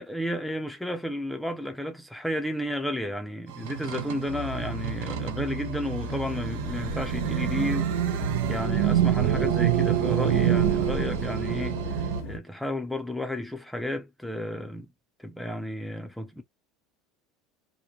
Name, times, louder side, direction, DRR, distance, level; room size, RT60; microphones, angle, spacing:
voice 1, 0.0-14.9 15.2-16.4, left 1 dB, 5° left, 0.6 m, -32 dB
sound 1, 3.5-12.2, right 10 dB, 85° right, 0.6 m, -27 dB
sound 2, 4.3-12.4, left 1 dB, 70° left, 1.1 m, -37 dB
3.0 x 2.1 x 2.4 m
supercardioid pair, 140°, 0 cm